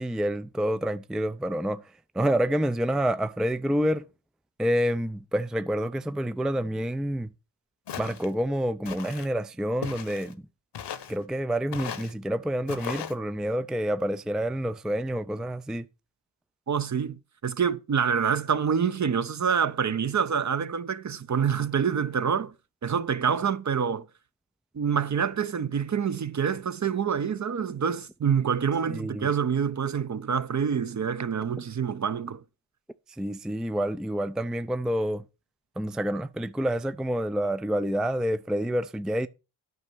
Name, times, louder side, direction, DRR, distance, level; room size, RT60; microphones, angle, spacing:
voice 1, 0.0-1.8 2.1-4.1 4.6-7.3 8.0-10.4 11.1-15.9 28.9-29.3 33.2-35.2 35.8-39.3, equal, ahead, 0.5 m, -28 dB
Walk footsteps, 7.9-8.3 8.8-9.3 9.8-10.3 10.7-11.2 11.7-12.1 12.7-13.1, left 8 dB, 60° left, 1.2 m, -37 dB
voice 2, 16.7-22.5 22.8-24.0 24.7-32.4, right 7 dB, 40° right, 0.8 m, -26 dB
9.6 x 5.2 x 6.0 m
supercardioid pair, 45°, 46 cm